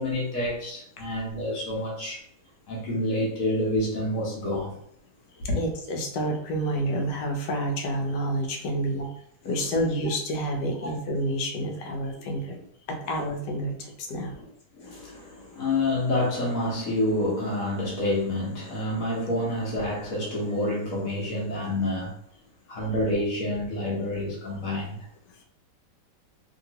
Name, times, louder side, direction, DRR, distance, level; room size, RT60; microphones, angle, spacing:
voice 1, 0.0-2.2 2.7-4.8 5.5-5.6 8.9-9.0 10.8-10.9 14.7-22.1 22.7-25.0, left 1 dB, 55° left, -3 dB, 1.2 m, -28 dB
voice 2, 5.6-9.1 9.4-12.6 12.9-14.4, right 1 dB, 75° left, 2 dB, 1.2 m, -29 dB
2.9 x 2.8 x 2.8 m, 0.69 s
omnidirectional pair, 1.9 m